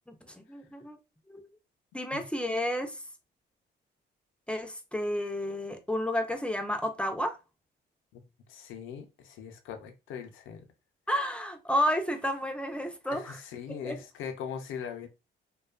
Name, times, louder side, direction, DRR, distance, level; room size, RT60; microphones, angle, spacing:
voice 1, 0.5-1.0 1.3-1.5 1.9-3.0 4.5-7.4 11.1-13.4 13.8-14.0, equal, 5° left, 0.4 m, -31 dB
voice 2, 8.5-10.7 13.1-15.1, left 7 dB, 85° left, 0.5 m, -40 dB
2.6 x 2.2 x 2.3 m
cardioid pair, 90°, 20 cm